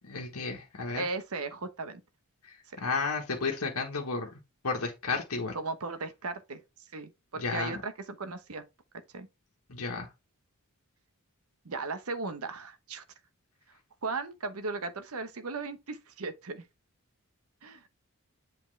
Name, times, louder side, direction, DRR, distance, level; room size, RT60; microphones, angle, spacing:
voice 1, 0.1-1.0 2.5-4.3 4.6-5.6 7.4-7.8 9.7-10.1, left 4 dB, 80° left, 1.4 m, -32 dB
voice 2, 0.9-2.0 2.7-2.8 5.5-6.6 6.9-7.9 8.2-8.6 9.1-9.3 11.6-13.0 14.0-16.6 17.6-17.8, right 3 dB, 75° right, 1.0 m, -36 dB
7.7 x 4.3 x 3.3 m
head